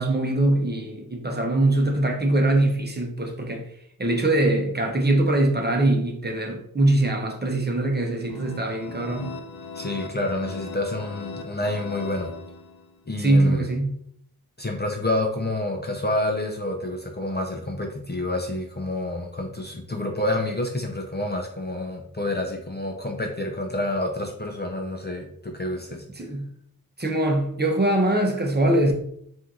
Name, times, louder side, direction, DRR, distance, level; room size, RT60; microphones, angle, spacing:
voice 1, 0.0-3.6 4.0-9.3 13.2-14.0 26.2-26.5 27.0-28.9, right 1 dB, 25° right, 0.8 m, -22 dB
sound 1, 8.3-13.0, left 4 dB, 80° left, 0.6 m, -39 dB
voice 2, 9.7-12.3 13.1-13.7 14.6-26.0, left 1 dB, 25° left, 0.6 m, -28 dB
4.4 x 2.7 x 3.7 m
wide cardioid pair, 90°, 37 cm